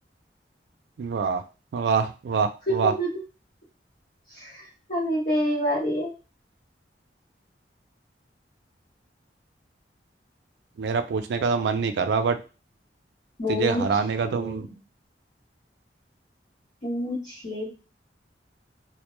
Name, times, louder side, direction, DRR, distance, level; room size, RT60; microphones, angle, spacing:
voice 1, 1.0-1.4 1.7-2.9 10.8-12.4 13.5-14.7, right 5 dB, 70° right, 8 dB, 0.3 m, -25 dB
voice 2, 2.7-3.1 4.4-4.5 4.9-6.1 13.4-13.8 14.2-14.6 16.8-17.7, equal, 45° left, -10 dB, 1.0 m, -27 dB
2.1 x 2.1 x 3.0 m, 0.32 s
head